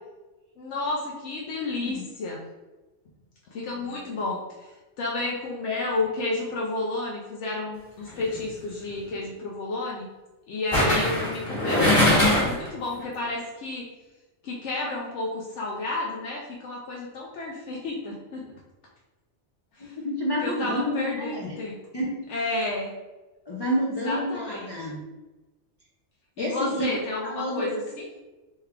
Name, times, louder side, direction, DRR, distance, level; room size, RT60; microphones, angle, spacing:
voice 1, 0.6-2.4 3.5-10.1 10.5-13.9 14.4-18.6 19.8-19.9 20.4-21.8 22.3-22.9 24.0-24.7 26.4-28.1, left 2 dB, 75° left, -3 dB, 0.9 m, -31 dB
sound 1, 8.1-8.4 10.7-12.7 13.0-13.1, left 1 dB, 20° left, 1.1 m, -21 dB
voice 2, 19.8-21.6 21.9-22.5 23.5-25.0 26.4-27.0 27.2-27.7, equal, 40° left, -5 dB, 0.3 m, -29 dB
3.5 x 3.2 x 2.2 m, 1.1 s
omnidirectional pair, 1.2 m